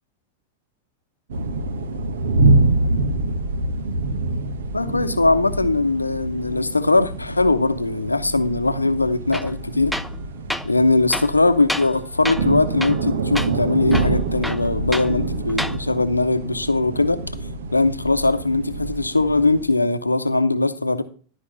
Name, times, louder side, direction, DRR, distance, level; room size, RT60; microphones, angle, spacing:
sound 1, 1.3-19.7, right 2 dB, 60° right, 1.1 m, -25 dB
voice 1, 4.7-10.0 10.7-17.2 17.7-21.0, left 3 dB, 80° left, 11 dB, 0.8 m, -20 dB
Tools, 9.3-9.5 9.9-10.2 10.5-10.7 11.1-12.0 12.3-12.5 12.8-13.1 13.4-13.5 13.9-15.1 15.5-15.8, left 1 dB, ahead, 0.5 m, -28 dB
12.5 x 5.2 x 5.7 m, 0.41 s
figure-of-eight pair, 90°, 0 cm